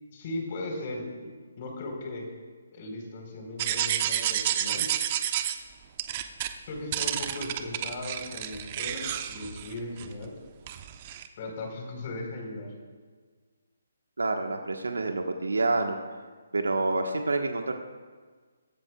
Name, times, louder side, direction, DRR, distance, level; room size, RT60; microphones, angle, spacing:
voice 1, 0.1-2.3 2.7-4.9 6.7-10.3 11.4-12.7, left 2 dB, 40° left, 0 dB, 4.4 m, -37 dB
sound 1, 3.6-5.6 6.0-6.5 6.9-10.3 10.7-11.3, right 11 dB, 35° right, 0.9 m, -30 dB
voice 2, 14.2-16.0 16.5-17.7, right 2 dB, 80° right, 4 dB, 1.4 m, -27 dB
25.0 x 13.5 x 2.4 m, 1.5 s
figure-of-eight pair, 150°, 0 cm